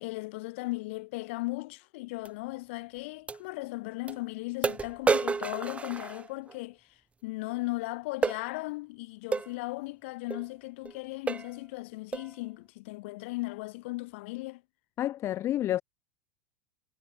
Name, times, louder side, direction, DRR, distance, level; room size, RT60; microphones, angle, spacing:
voice 1, 0.0-6.9 7.2-14.6, left 22 dB, 55° left, 4.6 m, -37 dB
sound 1, 2.2-2.3 3.3-3.4 4.1-4.2 4.6-6.6 8.2-8.4 9.3-9.5 10.3-10.5 10.8-11.0 11.3-11.6 12.1-12.4, right 4 dB, 15° right, 5.8 m, -30 dB
voice 2, 15.0-15.8, left 13 dB, 35° left, 1.5 m, -29 dB
figure-of-eight pair, 85°, 8 cm